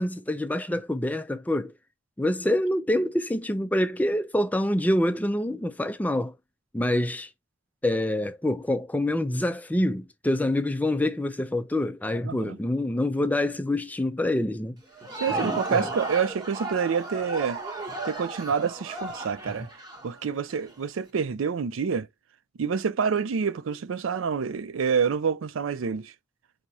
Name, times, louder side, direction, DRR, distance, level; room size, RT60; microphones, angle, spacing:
voice 1, 0.0-1.7 2.2-6.4 6.7-7.3 7.8-14.8 15.3-15.9, left 1 dB, 10° left, 0.3 m, -26 dB
voice 2, 12.2-12.6 15.2-17.6 18.0-19.7 20.0-22.1 22.6-26.1, right 6 dB, 85° right, 0.4 m, -27 dB
Crowd, 14.8-20.7, right 2 dB, 20° right, 0.9 m, -35 dB
4.6 x 2.8 x 2.7 m
head